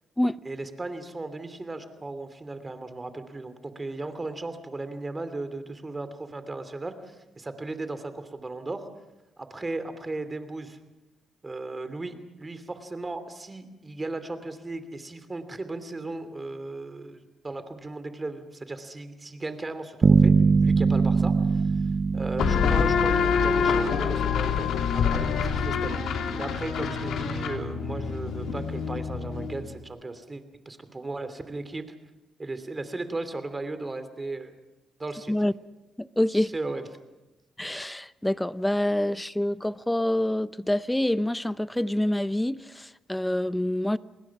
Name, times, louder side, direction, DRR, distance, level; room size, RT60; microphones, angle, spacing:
voice 1, 0.4-8.9 9.4-10.8 11.4-20.3 20.6-21.6 22.1-26.0 26.4-31.9 32.4-34.5 35.0-35.3 36.3-36.8, right 2 dB, 20° right, 2.9 m, -36 dB
sound 1, 20.0-24.0, right 4 dB, 40° right, 0.7 m, -22 dB
sound 2, 22.4-29.7, left 6 dB, 75° left, 3.0 m, -26 dB
voice 2, 36.0-36.5 37.6-44.0, left 1 dB, 5° left, 0.7 m, -26 dB
29.5 x 20.5 x 6.1 m
cardioid pair, 90°, 0 cm